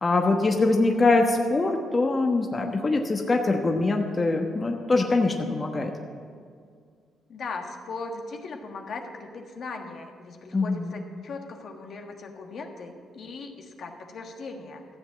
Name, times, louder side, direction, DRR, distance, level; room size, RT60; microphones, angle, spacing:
voice 1, 0.0-5.9 10.5-10.9, left 3 dB, 30° left, 2 dB, 1.1 m, -23 dB
voice 2, 7.3-14.8, left 3 dB, 60° left, 2 dB, 1.5 m, -38 dB
14.0 x 7.4 x 7.4 m, 2.1 s
cardioid pair, 90°, 0 cm